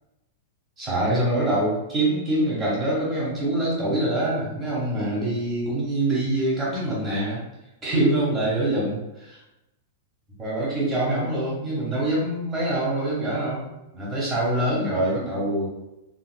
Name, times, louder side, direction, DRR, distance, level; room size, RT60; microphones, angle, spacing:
voice 1, 0.8-7.4 7.8-9.4 10.4-13.6 13.9-15.7, right 1 dB, 20° right, -6 dB, 0.8 m, -24 dB
3.7 x 2.3 x 2.2 m, 0.93 s
supercardioid pair, 165°, 0 cm